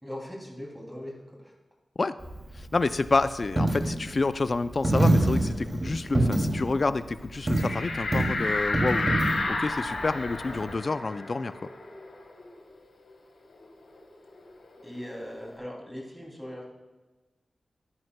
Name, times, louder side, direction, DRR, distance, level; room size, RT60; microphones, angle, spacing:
voice 1, 0.0-1.5 14.8-16.6, equal, 5° right, -1 dB, 2.9 m, -40 dB
Coin (dropping), 2.2-10.7, right 1 dB, 40° right, 2.6 m, -27 dB
voice 2, 2.6-9.1 9.5-11.5, left 3 dB, 50° left, 13 dB, 0.4 m, -28 dB
sound 1, 7.5-12.7 13.1-13.2 13.5-15.2, left 2 dB, 90° left, 1.6 m, -32 dB
13.5 x 11.0 x 2.3 m, 1.2 s
cardioid pair, 50°, 0 cm